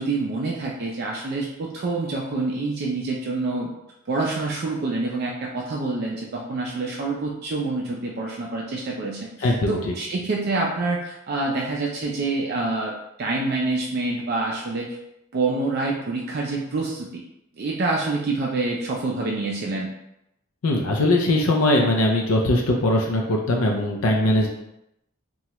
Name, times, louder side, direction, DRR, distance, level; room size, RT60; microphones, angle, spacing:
voice 1, 0.0-3.7 4.1-12.9 13.2-15.0 15.3-17.2 17.6-19.9, right 3 dB, 45° right, -2 dB, 0.3 m, -27 dB
voice 2, 9.4-9.9 20.6-24.5, left 1 dB, 75° left, 1 dB, 0.4 m, -20 dB
2.8 x 2.3 x 2.9 m, 0.83 s
head